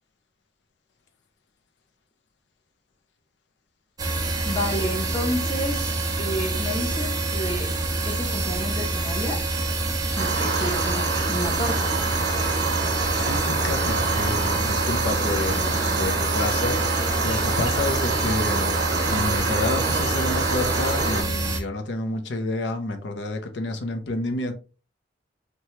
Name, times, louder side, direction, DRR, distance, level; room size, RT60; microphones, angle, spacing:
sound 1, 4.0-21.6, right 2 dB, 20° right, 0.4 m, -26 dB
voice 1, 4.4-5.9 6.2-7.7 8.0-9.4 10.2-11.9, equal, 25° left, 1 dB, 0.7 m, -30 dB
sound 2, 10.2-21.2, right 3 dB, 60° right, 0.7 m, -27 dB
voice 2, 13.1-18.8 19.1-24.5, left 2 dB, 70° left, 5 dB, 0.5 m, -29 dB
2.8 x 2.3 x 3.0 m, 0.35 s
head